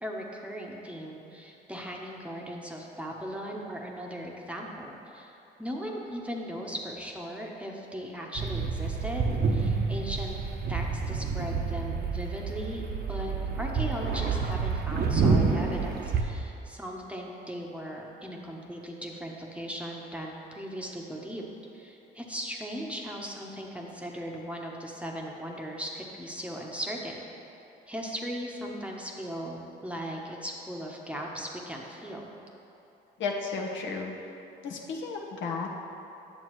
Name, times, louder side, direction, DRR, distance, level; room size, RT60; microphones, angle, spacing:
voice 1, 0.0-5.3 5.6-10.3 10.7-21.5 21.7-27.2 27.9-32.3, equal, 5° right, -1 dB, 0.9 m, -38 dB
sound 1, 8.3-16.2, right 4 dB, 50° right, 0.8 m, -28 dB
voice 2, 33.2-34.1 34.6-35.7, left 4 dB, 70° left, 0 dB, 1.0 m, -33 dB
9.4 x 7.0 x 3.1 m, 3.0 s
cardioid pair, 90°, 20 cm